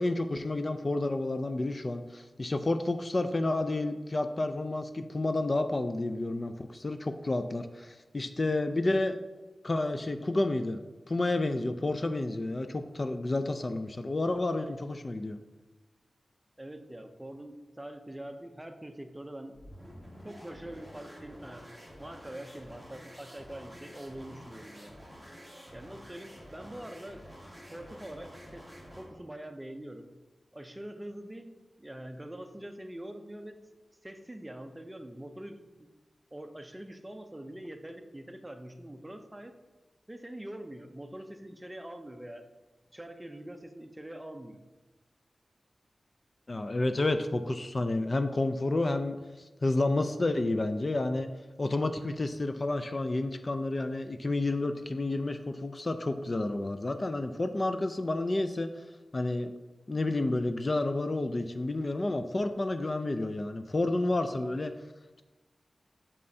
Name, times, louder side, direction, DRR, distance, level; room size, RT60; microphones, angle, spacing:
voice 1, 0.0-9.2 9.6-10.8 11.1-15.4 46.5-51.3 51.6-58.7 59.1-59.5 59.9-64.7, left 2 dB, 35° left, 8 dB, 0.3 m, -30 dB
voice 2, 16.6-19.5 20.2-21.7 22.0-25.0 25.7-27.2 27.7-28.6 29.0-30.1 30.5-33.6 34.0-35.9 36.3-39.5 40.1-42.4 42.9-44.6, right 1 dB, 15° right, 6 dB, 0.5 m, -44 dB
sound 1, 19.5-29.2, equal, 10° left, 1.8 m, -49 dB
6.7 x 5.4 x 2.7 m, 1.2 s
wide cardioid pair, 95°, 0 cm